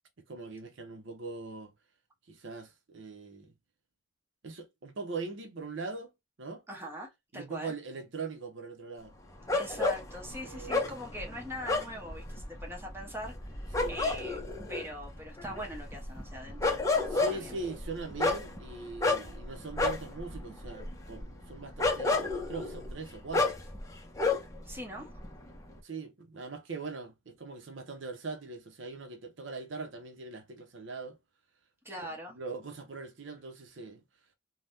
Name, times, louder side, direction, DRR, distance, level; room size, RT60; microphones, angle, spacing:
voice 1, 0.2-1.7 2.3-3.5 4.4-6.1 6.4-6.6 7.3-9.2 10.4-10.8 13.8-14.0 17.1-23.6 25.8-31.2 32.0-32.1 32.3-34.0, right 3 dB, 75° right, 0.7 m, -41 dB
voice 2, 6.7-7.7 9.6-14.4 14.7-17.6 24.6-25.1 31.8-32.4, equal, 10° right, 1.0 m, -42 dB
sound 1, 9.5-24.7 25.0-25.7, left 3 dB, 15° left, 0.6 m, -32 dB
3.4 x 2.2 x 2.6 m
head